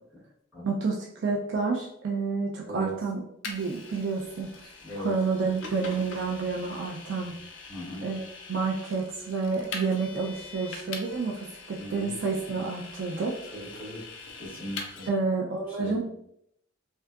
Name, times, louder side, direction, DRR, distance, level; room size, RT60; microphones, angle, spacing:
voice 1, 0.6-3.2 3.5-4.7 5.0-7.3 8.0-13.4 15.1-16.0, right 4 dB, 60° right, -2 dB, 0.4 m, -29 dB
Vehicle, 3.4-15.1, left 4 dB, 65° left, 0.4 m, -43 dB
voice 2, 4.8-5.2 7.7-8.1 11.8-12.1 13.5-14.1 14.3-15.1 15.7-16.0, equal, 10° right, -10 dB, 1.4 m, -38 dB
2.6 x 2.2 x 2.3 m, 0.71 s
head